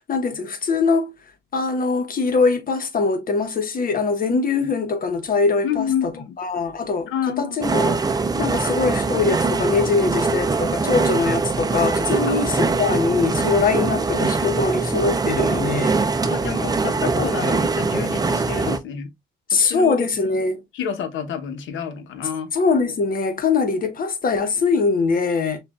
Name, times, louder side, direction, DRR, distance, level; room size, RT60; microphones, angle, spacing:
voice 1, 0.1-1.1 1.5-6.1 6.4-8.0 8.4-16.0 18.7-18.8 19.5-20.6 22.5-25.6, left 4 dB, 45° left, 1.1 m, -22 dB
voice 2, 5.6-6.3 7.1-7.6 12.2-12.8 16.3-19.1 19.5-20.3 20.7-22.5, left 8 dB, 80° left, 1.0 m, -29 dB
sound 1, 7.6-18.8, right 4 dB, 20° right, 0.5 m, -22 dB
6.1 x 2.5 x 2.3 m
cardioid pair, 100°, 20 cm